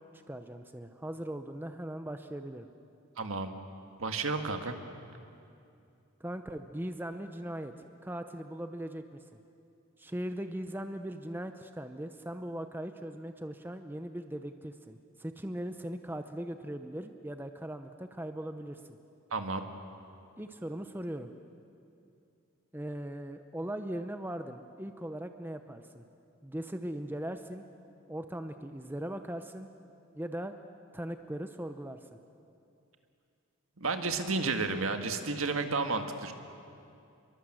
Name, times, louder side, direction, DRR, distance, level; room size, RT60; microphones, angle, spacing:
voice 1, 0.1-2.7 6.2-7.7 8.0-9.0 9.3-9.4 10.0-19.0 20.4-21.3 22.7-26.0 26.4-27.7 28.1-29.7 30.2-30.5 30.9-32.2, right 1 dB, 10° right, 8 dB, 0.7 m, -39 dB
voice 2, 3.2-3.5 4.0-4.7 19.3-19.6 33.8-36.3, right 3 dB, 70° right, 6 dB, 1.8 m, -31 dB
27.5 x 23.0 x 7.8 m, 2.6 s
head